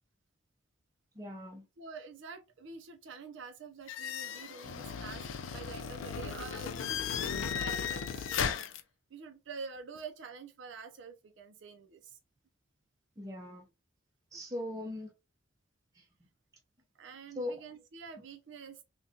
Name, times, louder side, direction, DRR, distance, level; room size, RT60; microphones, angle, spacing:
voice 1, 1.1-1.6 13.2-13.7 14.3-15.1 15.9-16.0 17.3-17.6, left 1 dB, 15° right, 0.5 m, -39 dB
voice 2, 1.8-6.7 7.0-8.4 9.1-12.2 16.9-18.8, right 5 dB, 65° right, 0.5 m, -47 dB
sound 1, 3.9-8.8, left 7 dB, 80° left, 0.4 m, -36 dB
3.6 x 2.2 x 2.7 m
head